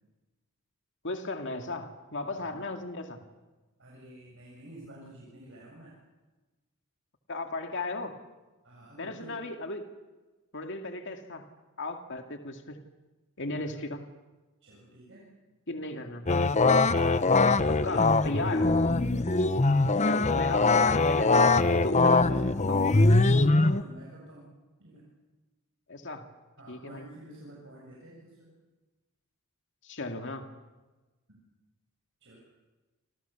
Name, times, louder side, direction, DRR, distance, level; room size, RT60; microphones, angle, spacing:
voice 1, 1.0-3.2 7.3-8.2 9.0-9.9 10.5-11.5 11.8-12.8 13.4-14.1 15.7-16.3 17.8-18.7 20.0-21.4 21.7-22.9 25.9-26.3 26.7-27.1 29.8-30.5, left 2 dB, 55° left, 5 dB, 2.3 m, -36 dB
voice 2, 3.8-5.9 8.6-9.4 13.6-13.7 14.6-15.3 15.8-16.1 16.9-17.7 18.6-18.8 19.1-19.5 21.8-22.3 22.8-24.5 24.8-25.1 26.6-28.5 31.3-31.4 32.2-32.4, right 1 dB, 60° right, -3 dB, 7.5 m, -49 dB
sound 1, 16.3-23.8, left 3 dB, 30° left, 1.0 m, -22 dB
28.0 x 28.0 x 7.1 m, 1.2 s
head